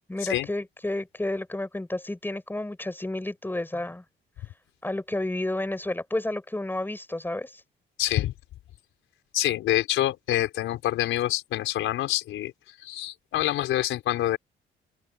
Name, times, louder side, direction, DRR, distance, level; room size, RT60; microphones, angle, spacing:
voice 1, 0.1-4.0 4.8-7.6, left 1 dB, 10° left, 4.8 m, -31 dB
voice 2, 8.0-8.3 9.3-12.5 12.8-14.4, left 14 dB, 90° left, 4.4 m, -26 dB
open air
cardioid pair, 90°, 20 cm